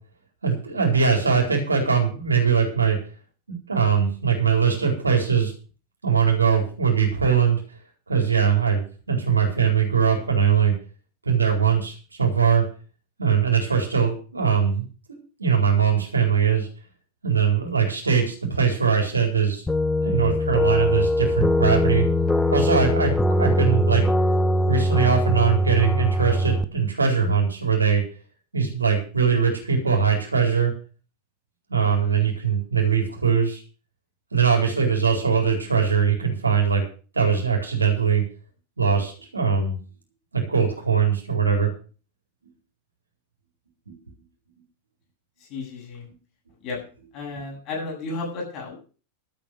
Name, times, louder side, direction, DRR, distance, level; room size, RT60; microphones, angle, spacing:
voice 1, 0.4-3.0 3.7-5.5 6.0-7.6 8.1-10.7 11.2-12.6 13.2-16.7 17.2-19.6 20.0-22.1 22.5-24.1 24.7-28.0 28.5-30.7 31.7-33.6 34.3-36.8 37.1-38.2 38.8-39.8 40.3-41.7 43.9-44.0, right 6 dB, 80° right, 2 dB, 4.3 m, -21 dB
sound 1, 19.7-26.6, left 1 dB, 10° left, 0.9 m, -21 dB
voice 2, 45.5-46.1 46.6-46.8 47.1-48.8, left 3 dB, 40° left, 0 dB, 8.0 m, -33 dB
12.5 x 8.9 x 6.5 m, 0.37 s
figure-of-eight pair, 90°, 0 cm